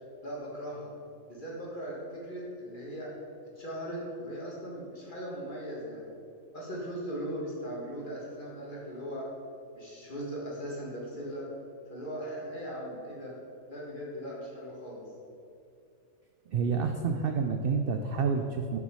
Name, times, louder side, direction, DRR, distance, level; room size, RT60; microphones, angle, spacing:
voice 1, 0.2-0.9 1.3-3.1 3.6-6.1 6.5-9.3 9.7-11.5 11.9-13.3 13.7-15.0, equal, 35° left, -5 dB, 2.1 m, -38 dB
voice 2, 16.5-18.8, right 5 dB, 70° right, 5 dB, 0.5 m, -29 dB
7.0 x 6.2 x 6.2 m, 2.5 s
omnidirectional pair, 1.5 m